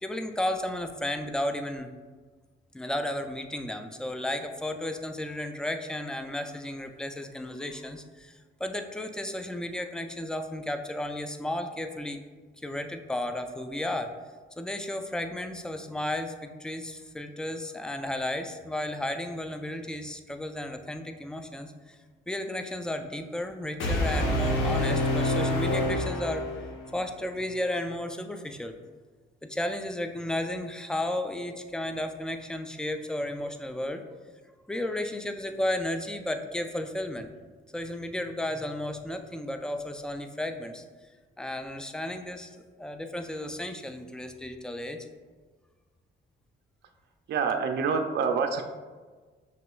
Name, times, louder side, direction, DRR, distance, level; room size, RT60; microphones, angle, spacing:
voice 1, 0.0-1.9 2.7-12.2 12.6-14.1 14.6-22.0 22.3-26.6 26.9-28.7 29.5-34.0 34.7-37.3 37.7-40.8 41.4-45.1, left 1 dB, 5° left, 6 dB, 0.3 m, -33 dB
sound 1, 23.8-26.9, left 1 dB, 80° left, 0.9 m, -27 dB
voice 2, 47.3-48.7, right 5 dB, 60° right, 5 dB, 0.4 m, -26 dB
5.9 x 3.0 x 2.3 m, 1.4 s
cardioid pair, 90°, 20 cm